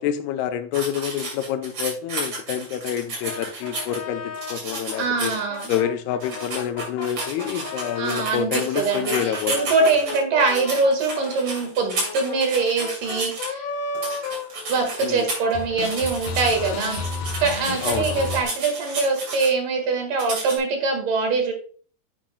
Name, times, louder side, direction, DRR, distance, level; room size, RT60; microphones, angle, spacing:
voice 1, 0.0-5.3 5.7-9.7 15.0-15.3 17.8-18.3, left 10 dB, 85° left, 8 dB, 2.7 m, -28 dB
sound 1, 0.7-4.0 4.3-5.8 6.2-13.5 13.9-15.5 15.8-19.5 20.2-20.6, right 2 dB, 40° right, 3.3 m, -32 dB
sound 2, 3.2-8.4 8.9-15.2 15.4-18.4, left 4 dB, 65° left, 1.7 m, -34 dB
voice 2, 5.0-5.7 8.0-13.7 14.7-17.0 17.4-21.5, right 4 dB, 60° right, 4 dB, 3.2 m, -23 dB
10.0 x 7.3 x 2.3 m, 0.41 s
omnidirectional pair, 4.5 m